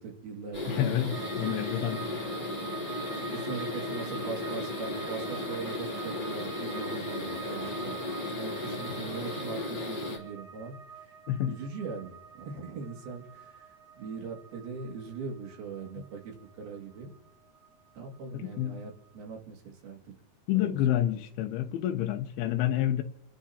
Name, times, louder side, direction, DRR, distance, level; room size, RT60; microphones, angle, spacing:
voice 1, 0.0-1.8 3.1-8.0 8.4-11.1 11.5-13.7 14.0-17.1 17.9-20.2 20.5-21.0, right 5 dB, 80° right, 4.1 m, -41 dB
sound 1, 0.5-10.2, left 2 dB, 15° left, 2.8 m, -35 dB
voice 2, 0.7-2.0 11.3-11.6 18.3-18.8 20.5-23.0, left 12 dB, 85° left, 2.7 m, -28 dB
sound 2, 1.1-18.2 18.5-19.2, right 6 dB, 20° right, 8.1 m, -46 dB
29.0 x 11.5 x 2.8 m
omnidirectional pair, 4.4 m